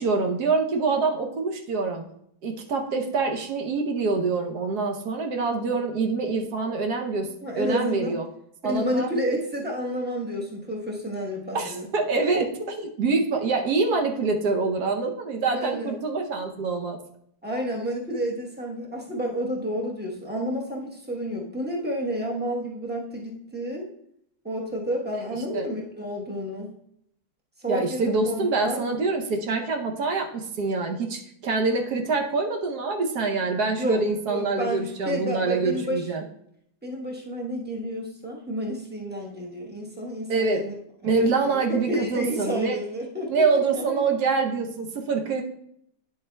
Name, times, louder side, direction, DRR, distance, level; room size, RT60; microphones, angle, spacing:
voice 1, 0.0-2.1 2.4-8.2 8.6-9.1 11.5-12.5 13.0-17.0 25.5-25.7 27.7-36.2 40.3-40.7 41.0-42.8 43.3-45.4, right 4 dB, 70° right, 3 dB, 1.3 m, -25 dB
voice 2, 7.4-8.2 8.6-11.9 15.5-15.9 17.4-23.9 24.4-26.7 27.6-28.9 33.8-36.1 36.8-40.8 41.0-43.5 43.7-44.1, equal, 10° right, -2 dB, 0.7 m, -30 dB
9.6 x 7.0 x 2.2 m, 0.71 s
omnidirectional pair, 1.8 m